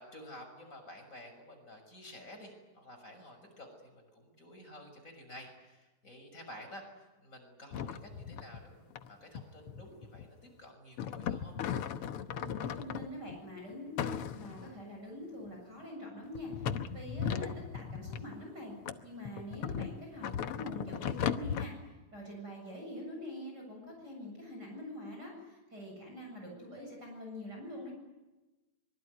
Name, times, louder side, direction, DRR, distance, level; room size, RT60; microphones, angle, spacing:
voice 1, 0.0-11.5 17.3-17.5, left 1 dB, 25° left, 3 dB, 6.7 m, -51 dB
sound 1, 7.7-8.6 8.9-9.1 9.3-10.4 11.0-13.4 14.0-14.8 15.5-15.6 16.3-18.4 18.9-21.7, left 8 dB, 65° left, 1.5 m, -37 dB
voice 2, 12.4-18.7 19.0-27.9, left 1 dB, 30° right, 0 dB, 8.0 m, -45 dB
25.5 x 23.5 x 9.5 m, 1.1 s
omnidirectional pair, 3.7 m